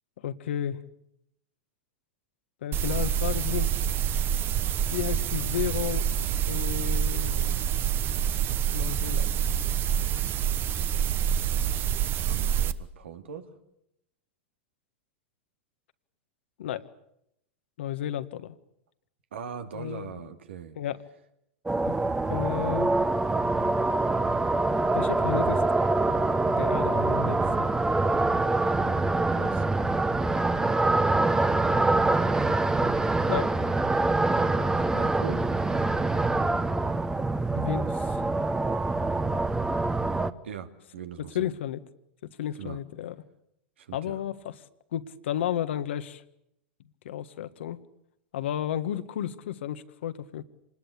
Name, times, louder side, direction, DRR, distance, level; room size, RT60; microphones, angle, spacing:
voice 1, 0.2-0.8 2.6-3.7 4.9-6.1 6.5-7.7 8.7-9.3 16.6-16.8 17.8-18.5 19.7-20.2 20.8-21.0 21.8-21.9 22.3-22.9 24.9-25.6 26.2-27.7 33.3-33.5 37.6-38.3 41.3-41.8 42.4-43.1 43.9-44.3 44.9-46.2 47.0-47.8 48.3-50.4, left 11 dB, 75° left, 11 dB, 1.6 m, -32 dB
sound 1, 2.7-12.7, right 9 dB, 35° right, 1.1 m, -27 dB
voice 2, 12.2-13.5 19.3-20.8 29.2-29.7 34.9-35.5 40.4-41.5 42.6-42.8 43.8-44.2, right 7 dB, 85° right, 8 dB, 2.5 m, -40 dB
sound 2, 21.7-40.3, right 2 dB, 10° right, 1.1 m, -25 dB
26.0 x 20.5 x 8.4 m, 0.78 s
hypercardioid pair, 115°, 6 cm